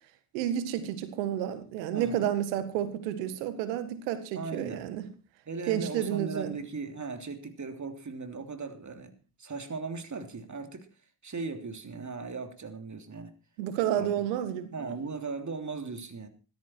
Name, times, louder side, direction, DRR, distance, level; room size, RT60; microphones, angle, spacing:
voice 1, 0.3-5.1 5.7-6.6 13.6-14.9, right 10 dB, 85° right, 1.9 m, -31 dB
voice 2, 1.9-2.3 4.3-4.9 5.5-9.1 9.4-10.9 11.2-13.3 14.0-14.3 14.7-16.3, right 4 dB, 35° right, 3.2 m, -38 dB
15.5 x 14.0 x 4.6 m
hypercardioid pair, 45°, 49 cm